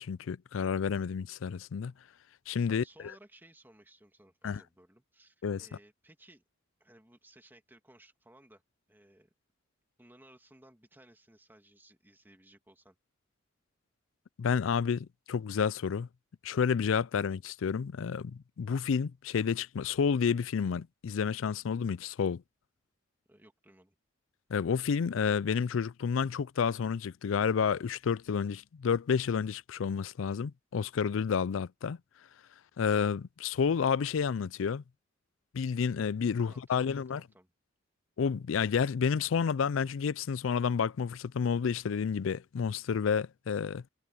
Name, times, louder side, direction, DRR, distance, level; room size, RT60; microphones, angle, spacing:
voice 1, 0.0-1.9 2.5-2.8 4.4-4.6 5.4-5.7 14.4-16.1 16.4-22.4 24.5-32.0 32.8-34.8 35.5-37.2 38.2-43.8, left 6 dB, 80° left, 0.4 m, -30 dB
voice 2, 2.7-6.4 6.8-8.6 8.9-9.3 10.0-13.0 23.3-24.0 36.4-37.5, right 1 dB, 10° right, 2.5 m, -59 dB
head